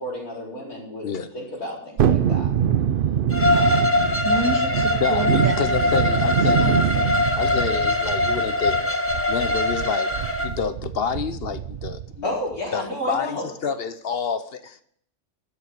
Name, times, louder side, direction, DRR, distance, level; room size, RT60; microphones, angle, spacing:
voice 1, 0.0-1.1 1.3-2.5 3.5-4.0 12.2-13.5, left 1 dB, 85° left, 4.7 m, -31 dB
Thunderstorm, 2.0-12.2 12.5-12.6, right 9 dB, 60° right, 0.6 m, -25 dB
Bowed string instrument, 3.3-10.5, left 2 dB, 10° left, 0.9 m, -22 dB
voice 2, 4.2-5.8 6.1-7.4, right 3 dB, 75° right, 2.3 m, -31 dB
voice 3, 5.0-7.0 7.4-8.9 9.3-10.1 10.4-12.3 12.7-14.8, left 6 dB, 50° left, 0.8 m, -28 dB
12.5 x 6.9 x 8.4 m
omnidirectional pair, 1.5 m